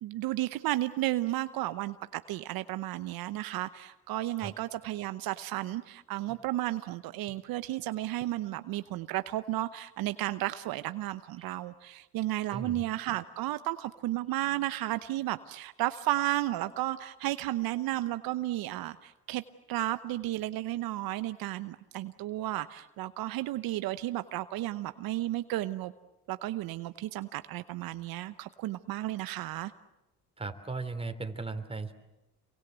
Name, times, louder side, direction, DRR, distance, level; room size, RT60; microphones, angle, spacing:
voice 1, 0.0-19.4 19.7-25.9 26.3-29.7, right 15 dB, 75° right, 12 dB, 0.9 m, -33 dB
voice 2, 12.5-12.8 30.4-31.9, right 3 dB, 15° right, 7 dB, 3.1 m, -37 dB
27.5 x 24.0 x 8.1 m, 0.95 s
supercardioid pair, 70°, 36 cm